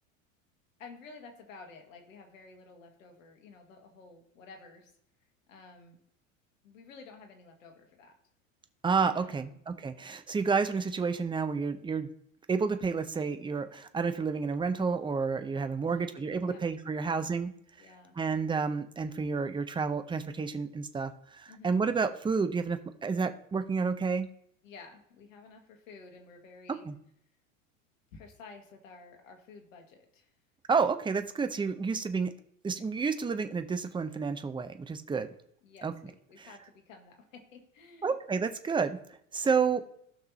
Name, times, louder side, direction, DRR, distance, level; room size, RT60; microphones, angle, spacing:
voice 1, 0.8-4.9 5.5-6.0 6.6-8.2 9.1-9.6 15.8-16.8 17.0-17.3 17.8-18.2 21.5-21.8 24.6-26.9 28.1-30.3 35.6-38.2, left 4 dB, 75° left, 4 dB, 2.0 m, -52 dB
voice 2, 8.8-12.1 12.5-17.5 18.2-24.3 26.8-26.9 30.7-32.3 32.6-35.3 35.8-35.9 36.4-36.5 38.0-39.0 39.3-39.8, right 5 dB, 10° right, 9 dB, 0.7 m, -30 dB
17.0 x 5.9 x 2.9 m, 0.70 s
hypercardioid pair, 85°, 40 cm